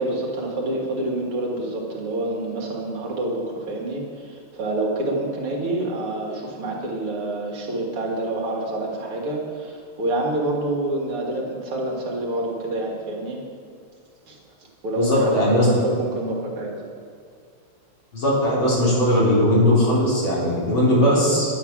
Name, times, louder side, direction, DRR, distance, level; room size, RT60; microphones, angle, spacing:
voice 1, 0.0-13.4 14.3-14.4 14.8-16.7, right 2 dB, 80° right, -2 dB, 2.8 m, -27 dB
voice 2, 14.9-15.7 18.1-21.5, left 1 dB, 65° left, -7 dB, 4.4 m, -19 dB
10.0 x 9.2 x 6.0 m, 2.2 s
omnidirectional pair, 2.4 m